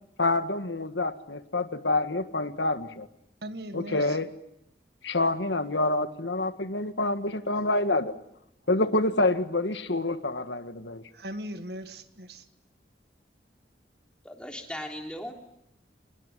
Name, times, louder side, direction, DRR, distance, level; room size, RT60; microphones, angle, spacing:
voice 1, 0.2-3.1 3.7-4.3 5.0-8.2 8.7-11.0, left 2 dB, 85° left, 10 dB, 1.6 m, -27 dB
voice 2, 3.4-4.2 11.1-12.4, right 1 dB, 65° right, 9 dB, 1.7 m, -39 dB
voice 3, 14.2-15.3, equal, 5° left, 2 dB, 3.4 m, -37 dB
27.0 x 20.5 x 9.9 m, 0.80 s
head